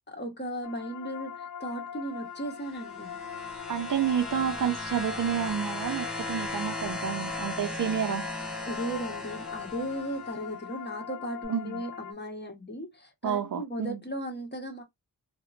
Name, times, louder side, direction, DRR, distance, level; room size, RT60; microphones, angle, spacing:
voice 1, 0.1-3.2 8.7-14.8, equal, 30° left, 1.1 m, -36 dB
sound 1, 0.6-12.1, left 8 dB, 60° left, 0.5 m, -42 dB
sound 2, 2.6-10.4 11.4-11.5, left 2 dB, ahead, 1.0 m, -37 dB
voice 2, 3.7-8.3 11.5-11.8 13.2-14.0, right 8 dB, 55° right, 0.5 m, -30 dB
3.0 x 2.1 x 2.4 m
wide cardioid pair, 75°, 38 cm